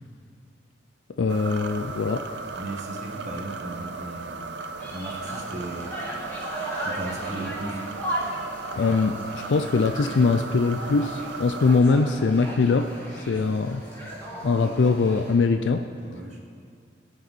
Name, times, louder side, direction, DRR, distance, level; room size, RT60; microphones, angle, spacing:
voice 1, 1.2-2.2 8.8-13.8 14.4-15.8, left 4 dB, 85° left, 7 dB, 0.4 m, -22 dB
sound 1, 1.3-11.8, right 4 dB, 70° right, 0.6 m, -36 dB
voice 2, 2.6-4.4 4.9-6.0 6.8-7.8 13.3-13.6 16.0-16.4, right 2 dB, 40° right, -2 dB, 1.7 m, -36 dB
sound 2, 4.8-15.3, right 1 dB, 15° left, 2.3 m, -36 dB
19.5 x 7.1 x 4.2 m, 2.2 s
head